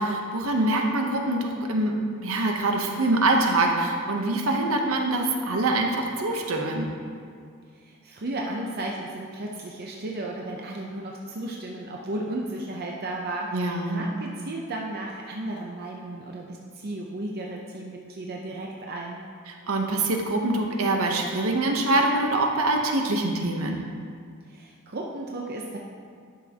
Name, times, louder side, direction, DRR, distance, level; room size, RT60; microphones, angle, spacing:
voice 1, 0.0-1.9 2.2-6.9 13.5-14.0 19.5-23.8, right 2 dB, 70° right, 2 dB, 0.9 m, -24 dB
voice 2, 7.7-19.2 24.5-25.8, right 1 dB, 45° right, -1 dB, 0.6 m, -34 dB
11.5 x 6.4 x 2.9 m, 2.2 s
head